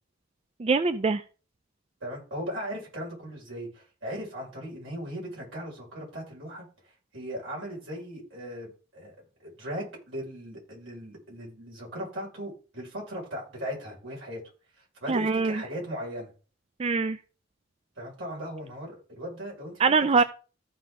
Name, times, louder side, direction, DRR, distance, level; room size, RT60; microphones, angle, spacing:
voice 1, 0.6-1.2 15.1-15.6 16.8-17.2 19.8-20.2, right 4 dB, 30° right, 12 dB, 0.4 m, -23 dB
voice 2, 2.0-6.7 7.1-9.2 9.4-14.4 15.0-16.3 18.0-19.7, equal, 80° right, -3 dB, 5.6 m, -38 dB
14.5 x 5.4 x 3.8 m, 0.36 s
head